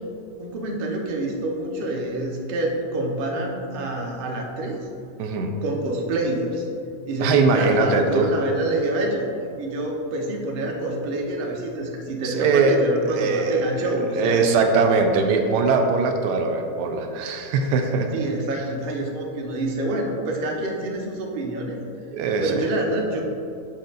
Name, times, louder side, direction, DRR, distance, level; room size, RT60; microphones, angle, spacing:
voice 1, 0.4-4.8 5.6-6.7 7.1-9.2 9.6-14.4 18.1-21.8 22.4-23.2, right 2 dB, 50° right, 0 dB, 0.7 m, -27 dB
voice 2, 5.2-5.5 7.2-8.3 12.2-12.8 13.1-13.7 14.1-18.1 22.1-22.7, right 4 dB, 90° right, 5 dB, 1.2 m, -21 dB
6.3 x 4.3 x 3.8 m, 2.7 s
omnidirectional pair, 1.8 m